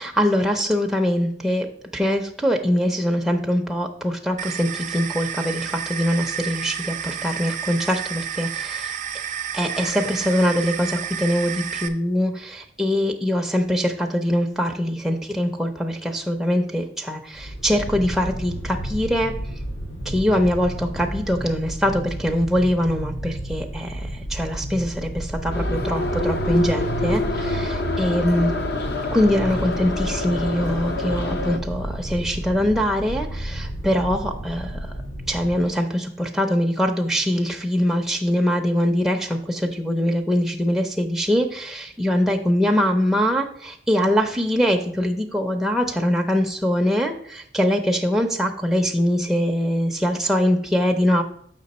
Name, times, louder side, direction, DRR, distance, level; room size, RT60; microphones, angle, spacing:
voice 1, 0.0-1.7 1.9-9.0 9.5-19.3 20.0-28.5 29.1-34.9 35.3-51.2, equal, ahead, 1 dB, 0.5 m, -23 dB
sound 1, 4.4-11.9, right 8 dB, 45° right, 0.6 m, -31 dB
sound 2, 17.4-35.7, right 1 dB, 80° left, 2.0 m, -31 dB
Subway metro underground, 25.5-31.6, left 2 dB, 60° left, 0.7 m, -27 dB
6.7 x 5.7 x 4.1 m, 0.63 s
head